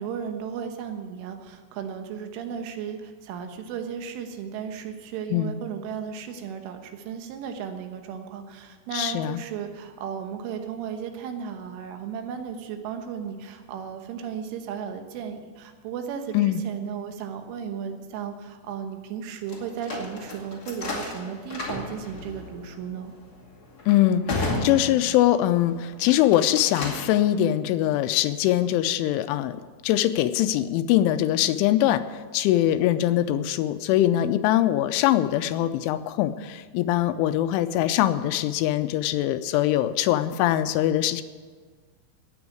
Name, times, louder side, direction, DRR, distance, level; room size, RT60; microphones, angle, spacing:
voice 1, 0.0-23.1, right 7 dB, 80° right, 6 dB, 3.7 m, -35 dB
voice 2, 8.9-9.4 16.3-16.6 23.9-29.6 29.8-32.0 32.3-41.2, left 13 dB, 85° left, 11 dB, 3.0 m, -22 dB
sound 1, 19.5-25.5 26.0-27.2, left 2 dB, 40° left, 1.4 m, -33 dB
17.5 x 7.1 x 8.5 m, 1.5 s
omnidirectional pair, 5.6 m